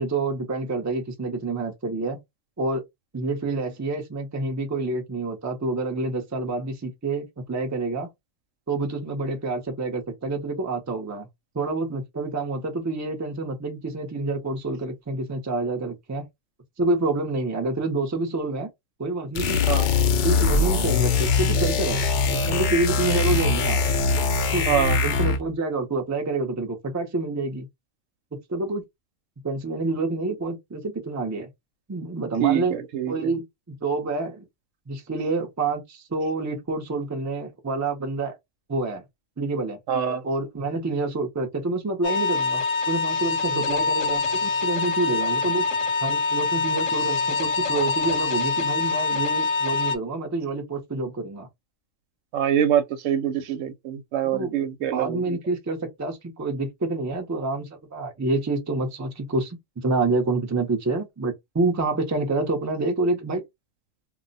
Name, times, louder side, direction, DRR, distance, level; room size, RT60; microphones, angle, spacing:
voice 1, 0.0-2.2 2.6-2.8 3.1-8.1 8.7-11.3 11.5-16.3 16.8-18.7 19.0-19.6 20.2-22.0 22.3-23.8 24.5-24.6 25.0-27.7 28.5-28.8 29.4-31.5 31.9-32.8 33.1-34.5 34.9-38.3 38.7-39.0 39.4-39.8 40.2-45.6 46.0-51.5 54.3-54.5 54.9-63.4, right 3 dB, 25° right, 0.4 m, -27 dB
sound 1, 19.4-25.5, left 4 dB, 65° left, 0.4 m, -22 dB
voice 2, 24.7-25.0 32.4-33.3 39.9-40.2 43.5-43.8 52.3-55.4, right 9 dB, 80° right, 0.9 m, -25 dB
sound 2, 42.0-50.0, left 4 dB, 85° left, 1.0 m, -25 dB
2.3 x 2.1 x 3.9 m
omnidirectional pair, 1.3 m